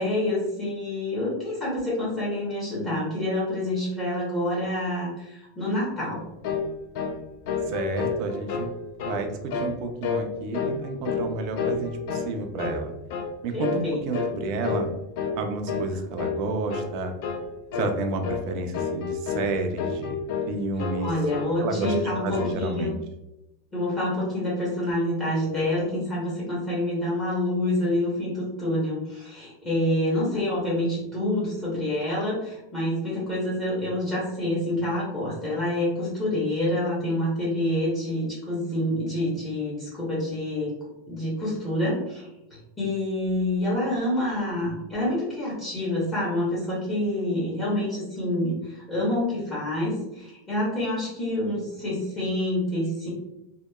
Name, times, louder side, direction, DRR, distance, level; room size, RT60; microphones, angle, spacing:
voice 1, 0.0-6.2 13.5-14.2 21.0-22.9 23.7-40.7 41.1-53.1, left 1 dB, 15° left, -8 dB, 0.7 m, -27 dB
sound 1, 6.4-6.7 6.9-7.2 7.5-8.7 9.0-9.2 9.5-9.8 10.0-10.3 10.5-11.3 11.6-12.3 12.6-12.8 13.1-13.3 13.6-13.8 14.1-14.3 14.6-14.9 15.2-15.4 15.7-15.9 16.2-16.4 16.7-16.9 17.2-17.5 17.7-17.9 18.2-18.4 18.7-19.5 19.8-20.5 20.8-21.5 21.8-22.6, left 5 dB, 50° left, 0.4 m, -29 dB
voice 2, 7.7-8.7 9.0-9.3 9.5-12.9 13.4-14.9 15.4-17.1 17.7-20.2 20.5-21.1 21.6-22.9, right 3 dB, 40° right, 5 dB, 0.4 m, -30 dB
2.8 x 2.1 x 2.2 m, 0.88 s
supercardioid pair, 170°, 0 cm